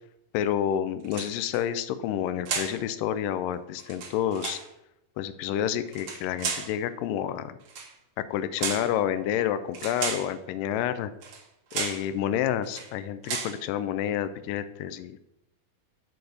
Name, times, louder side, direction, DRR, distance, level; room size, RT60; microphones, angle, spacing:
voice 1, 0.3-4.6 5.2-7.6 8.2-11.1 11.7-15.3, left 10 dB, 80° left, 12 dB, 2.1 m, -29 dB
sound 1, 1.0-1.6 2.4-2.8 3.8-4.7 5.9-6.7 7.6-7.9 8.6-8.9 9.7-10.3 11.2-11.4 11.7-12.1 12.6-12.9 13.2-13.6, right 5 dB, 70° right, 1.2 m, -33 dB
6.8 x 4.1 x 6.3 m, 0.85 s
omnidirectional pair, 4.0 m